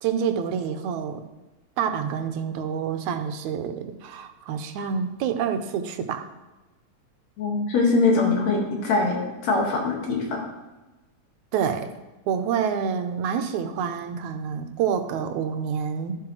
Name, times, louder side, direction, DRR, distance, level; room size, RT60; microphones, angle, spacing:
voice 1, 0.0-1.2 1.8-6.3 11.5-11.9 12.3-16.1, right 7 dB, 85° right, 8 dB, 2.1 m, -27 dB
voice 2, 7.4-10.4, left 3 dB, 65° left, 0 dB, 2.9 m, -23 dB
13.0 x 7.5 x 3.1 m, 1.1 s
omnidirectional pair, 3.4 m